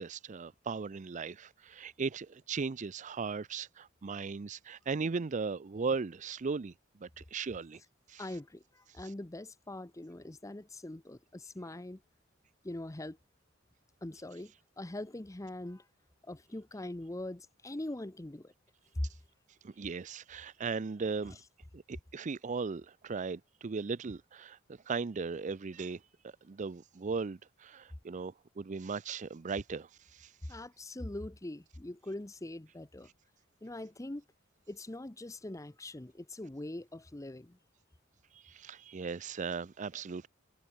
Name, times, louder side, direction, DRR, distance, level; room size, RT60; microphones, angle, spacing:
voice 1, 0.0-6.7 7.0-7.8 8.1-8.2 19.6-21.4 21.7-29.9 30.2-30.3 38.4-40.3, right 4 dB, 40° right, 0.5 m, -37 dB
voice 2, 8.2-12.0 12.6-13.2 14.0-15.8 16.2-18.5 18.9-19.1 21.2-21.4 30.5-33.1 33.6-34.2 34.7-37.6, left 1 dB, 15° left, 0.7 m, -42 dB
head